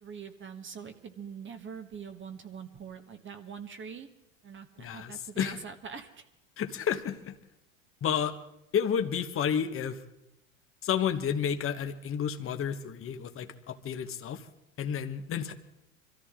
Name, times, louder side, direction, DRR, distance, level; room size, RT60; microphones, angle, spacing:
voice 1, 0.0-4.1 4.4-6.3, right 6 dB, 30° right, 7 dB, 1.5 m, -43 dB
voice 2, 4.8-5.6 6.6-7.3 8.0-8.4 8.7-10.0 10.8-14.4 14.8-15.5, left 8 dB, 30° left, 7 dB, 1.3 m, -31 dB
25.0 x 14.0 x 3.7 m, 0.84 s
hypercardioid pair, 80°, 40 cm